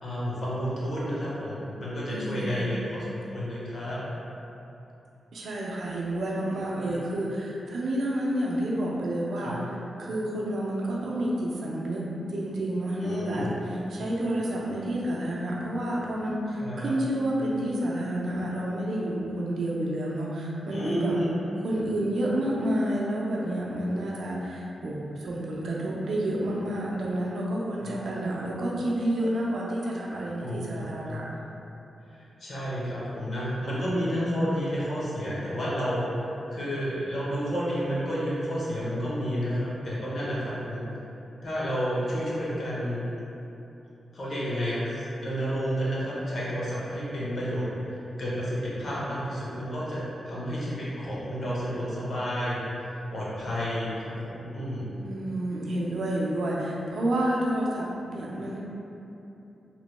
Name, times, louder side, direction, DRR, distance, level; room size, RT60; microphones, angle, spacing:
voice 1, 0.0-4.0 6.8-7.0 9.4-9.5 13.0-13.5 16.6-16.9 20.7-21.3 27.8-28.0 30.4-30.6 31.1-31.2 32.1-40.8 41.4-43.0 44.1-47.7 48.2-54.9, equal, 50° left, -8 dB, 0.8 m, -30 dB
voice 2, 2.1-2.7 5.3-21.2 21.6-31.3 55.0-58.6, right 1 dB, 75° right, -4 dB, 0.5 m, -29 dB
2.9 x 2.1 x 3.0 m, 3.0 s
wide cardioid pair, 150°, 0 cm